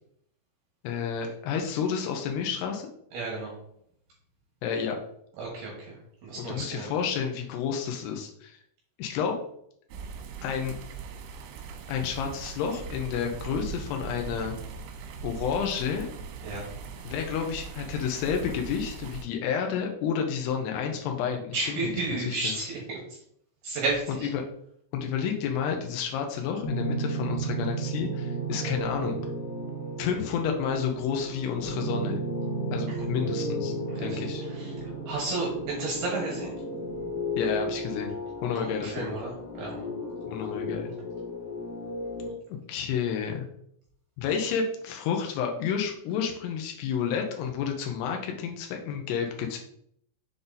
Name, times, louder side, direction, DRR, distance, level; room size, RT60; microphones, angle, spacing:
voice 1, 0.8-2.9 4.6-5.0 6.4-8.6 9.0-9.3 10.4-10.7 11.9-14.6 15.2-16.1 17.0-22.5 24.1-24.4 24.9-29.2 30.0-32.2 32.7-34.4 37.4-38.2 38.4-39.2 40.3-40.9 42.7-43.5 44.2-49.6, left 7 dB, 85° left, 3 dB, 2.3 m, -30 dB
voice 2, 3.1-3.5 5.4-5.9 6.2-6.9 16.4-16.6 21.5-23.0 23.6-24.3 33.9-34.2 34.5-34.7 35.1-36.6 38.6-39.8, right 3 dB, 65° right, -3 dB, 2.8 m, -32 dB
sound 1, 9.9-19.2, right 5 dB, 80° right, 3.2 m, -40 dB
sound 2, 26.6-42.3, right 1 dB, 60° left, 3.1 m, -33 dB
7.4 x 4.0 x 4.0 m, 0.69 s
omnidirectional pair, 5.9 m